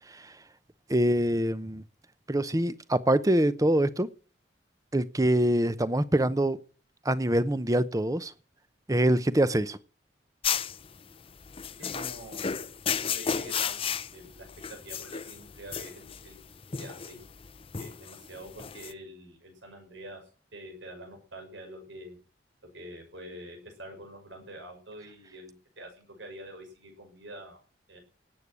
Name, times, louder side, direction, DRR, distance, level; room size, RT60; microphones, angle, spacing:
voice 1, 0.9-1.8 2.3-4.1 4.9-6.6 7.0-8.3 8.9-9.8, right 1 dB, 20° right, 0.7 m, -24 dB
sound 1, 10.4-18.9, left 7 dB, 30° left, 0.6 m, -33 dB
voice 2, 11.8-12.5 13.0-16.4 16.8-17.2 17.8-20.2 20.5-22.2 22.7-27.6 27.9-28.0, right 1 dB, 85° right, 6.1 m, -46 dB
18.0 x 8.4 x 6.2 m
head